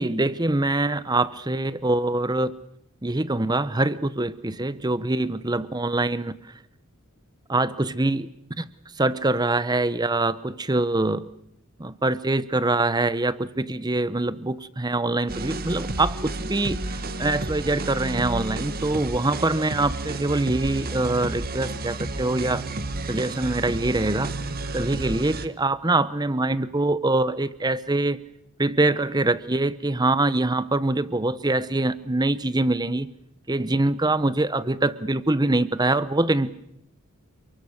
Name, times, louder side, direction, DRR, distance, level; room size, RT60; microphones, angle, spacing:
voice 1, 0.0-2.5 3.0-6.3 7.5-8.3 8.6-8.7 9.0-11.3 11.8-22.6 23.0-24.3 24.7-28.2 28.6-33.1 33.5-36.5, right 2 dB, 20° right, 16 dB, 0.9 m, -24 dB
sound 1, 15.3-25.5, right 2 dB, 45° right, 1.6 m, -31 dB
29.5 x 23.0 x 6.6 m, 0.76 s
head